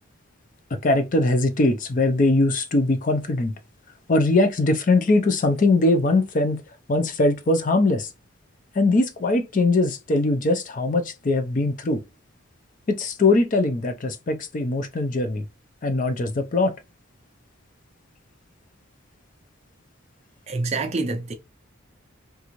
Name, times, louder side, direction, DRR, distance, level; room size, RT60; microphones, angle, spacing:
voice 1, 0.7-3.5 4.1-6.6 6.9-8.1 8.8-12.0 12.9-15.4 15.8-16.7, left 2 dB, 35° left, 0.4 m, -21 dB
voice 2, 20.5-21.3, right 3 dB, 30° right, 0.4 m, -26 dB
3.5 x 2.5 x 2.9 m
head